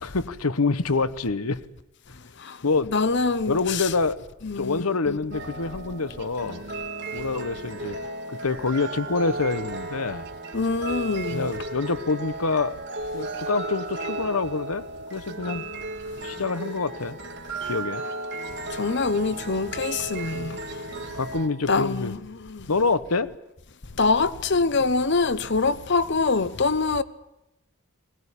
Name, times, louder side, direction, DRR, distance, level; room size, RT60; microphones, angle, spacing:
voice 1, 0.0-1.6 2.6-2.9 3.5-4.2 4.6-6.6 7.1-8.0 8.3-10.3 11.3-12.7 13.1-14.8 15.1-15.6 16.2-17.2 17.6-18.0 21.1-22.1 22.7-23.3, left 3 dB, 85° left, 1.1 m, -26 dB
voice 2, 2.9-3.9 4.4-5.4 10.5-11.5 18.7-20.6 21.7-22.7 24.0-27.0, left 4 dB, 55° left, 1.0 m, -25 dB
sound 1, 5.3-21.5, right 2 dB, 50° right, 1.9 m, -35 dB
21.5 x 19.0 x 9.9 m
head